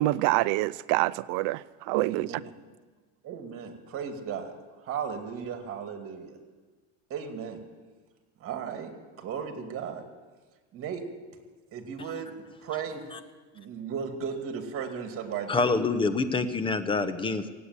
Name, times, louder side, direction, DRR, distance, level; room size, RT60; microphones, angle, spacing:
voice 1, 0.0-1.6 1.9-2.3, right 18 dB, 55° right, 0.5 m, -25 dB
voice 2, 2.0-2.4 3.2-4.5 4.8-6.4 7.1-7.6 8.4-8.9 9.2-10.0 10.7-11.0 11.7-12.3 12.6-13.0 13.5-15.6, right 7 dB, 40° right, 2.4 m, -35 dB
voice 3, 15.5-17.5, left 3 dB, 15° left, 0.9 m, -26 dB
16.0 x 8.5 x 9.6 m
supercardioid pair, 130°, 34 cm